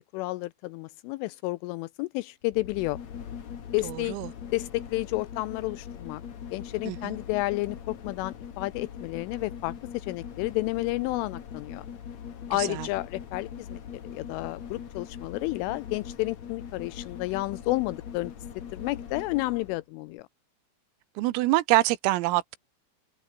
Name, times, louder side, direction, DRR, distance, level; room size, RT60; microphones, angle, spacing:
voice 1, 0.1-3.0 3.7-4.2 4.5-6.2 6.5-11.9 12.5-18.3 18.7-20.3, left 20 dB, 85° left, 3.0 m, -31 dB
sound 1, 2.4-19.8 20.2-20.3, left 8 dB, 50° left, 2.4 m, -41 dB
voice 2, 3.8-4.3 6.9-7.2 12.6-12.9 21.2-22.6, right 18 dB, 85° right, 3.7 m, -25 dB
omnidirectional pair, 5.9 m